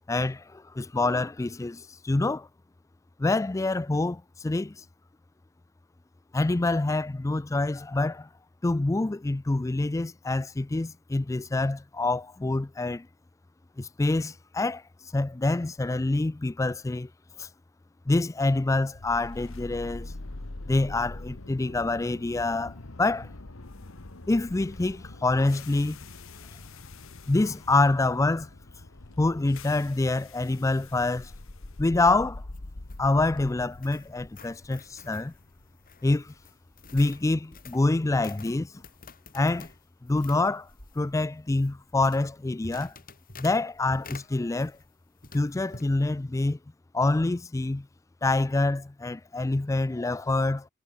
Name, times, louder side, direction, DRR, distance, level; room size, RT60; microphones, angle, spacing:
voice 1, 0.1-2.5 3.2-4.8 6.3-8.3 8.6-13.1 13.8-14.8 15.1-17.1 17.4-17.5 18.1-20.1 20.7-23.3 24.3-26.1 27.3-28.5 29.2-31.3 31.8-32.4 33.0-35.3 36.0-36.3 36.9-38.7 39.3-39.7 40.0-40.7 41.0-42.9 43.4-44.8 45.3-46.6 46.9-47.9 48.2-50.7, left 2 dB, 15° left, 0.4 m, -26 dB
sound 1, 18.9-37.0, left 2 dB, 65° left, 1.5 m, -44 dB
sound 2, 32.3-44.9 45.2-45.9, left 3 dB, 45° left, 6.7 m, -49 dB
head